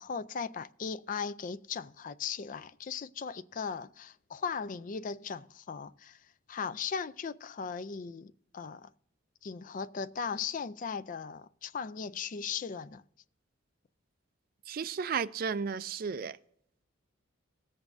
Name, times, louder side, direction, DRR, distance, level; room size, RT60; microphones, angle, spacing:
voice 1, 0.0-6.2 6.5-8.9 9.4-13.0, left 6 dB, 40° left, 0.3 m, -38 dB
voice 2, 14.7-16.4, right 6 dB, 45° right, 0.3 m, -33 dB
19.0 x 8.1 x 2.5 m
head